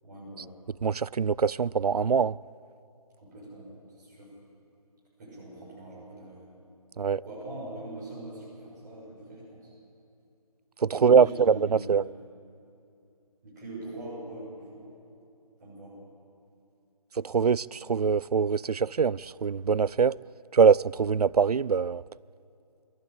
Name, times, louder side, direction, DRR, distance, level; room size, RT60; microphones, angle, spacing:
voice 1, 0.0-0.5 3.2-4.3 5.2-6.4 7.2-9.7 10.9-12.1 13.4-14.9 15.6-16.0, right 1 dB, 30° right, 6.8 m, -42 dB
voice 2, 0.8-2.4 7.0-7.2 10.8-12.1 17.2-20.2 20.5-22.0, right 6 dB, 80° right, 0.4 m, -23 dB
22.5 x 15.5 x 8.4 m
figure-of-eight pair, 165°, 20 cm